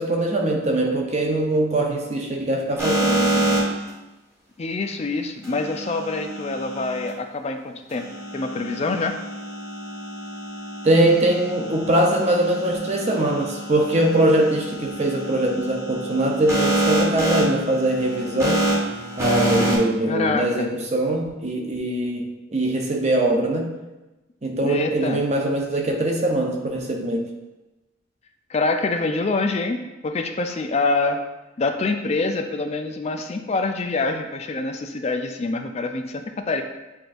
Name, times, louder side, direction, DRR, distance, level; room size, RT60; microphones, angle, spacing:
voice 1, 0.0-3.6 10.8-18.6 19.2-23.7 24.4-27.3, right 1 dB, 35° right, 1 dB, 0.6 m, -22 dB
sound 1, 2.8-3.9 5.4-7.1 7.9-19.8, right 1 dB, 15° right, 0.9 m, -27 dB
voice 2, 4.6-9.2 20.1-20.7 24.6-25.3 28.5-31.2 31.6-36.6, left 3 dB, 30° left, 5 dB, 0.3 m, -25 dB
7.7 x 2.6 x 2.5 m, 1.1 s
head